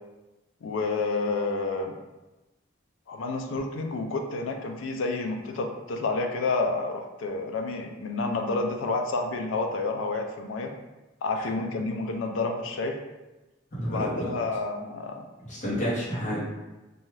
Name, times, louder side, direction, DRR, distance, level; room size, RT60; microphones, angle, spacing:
voice 1, 0.6-1.9 3.1-10.7 11.2-13.0 13.9-15.2, left 3 dB, 90° left, 4 dB, 0.4 m, -29 dB
voice 2, 13.7-14.3 15.4-16.4, equal, 40° left, -9 dB, 1.1 m, -30 dB
2.6 x 2.3 x 3.1 m, 1.1 s
head